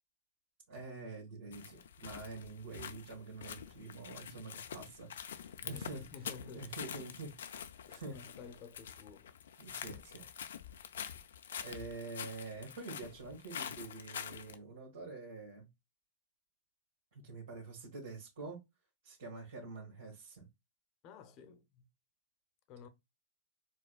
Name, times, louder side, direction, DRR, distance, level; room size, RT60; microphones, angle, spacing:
voice 1, 0.7-6.0 6.5-7.6 7.9-8.2 9.6-10.3 11.6-15.7 17.1-18.6 19.0-20.5, right 3 dB, 80° right, 1.5 m, -47 dB
sound 1, 1.5-14.6, left 8 dB, 80° left, 0.4 m, -46 dB
voice 2, 5.6-6.8 7.9-9.3 21.0-21.9 22.7-22.9, left 5 dB, 45° left, 0.7 m, -52 dB
4.4 x 2.2 x 2.2 m
hypercardioid pair, 115°, 0 cm